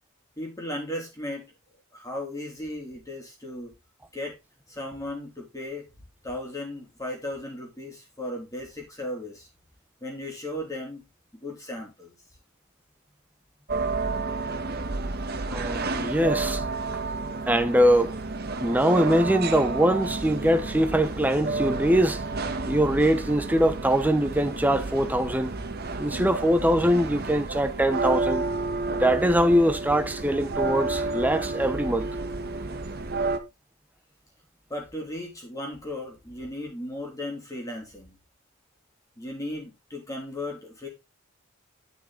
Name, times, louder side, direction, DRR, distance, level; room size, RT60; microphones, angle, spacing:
voice 1, 0.4-1.5 1.9-3.7 4.1-4.3 4.7-5.9 6.2-9.5 10.0-11.0 11.4-12.1 34.7-38.2 39.2-40.9, left 1 dB, 15° left, 3.4 m, -36 dB
sound 1, 13.7-33.4, right 3 dB, 45° right, 1.2 m, -31 dB
voice 2, 15.5-16.6 16.9-17.0 17.5-18.1 18.6-22.2 22.7-25.5 26.0-28.4 28.9-32.1, equal, 10° right, 0.8 m, -22 dB
10.5 x 6.2 x 3.9 m
head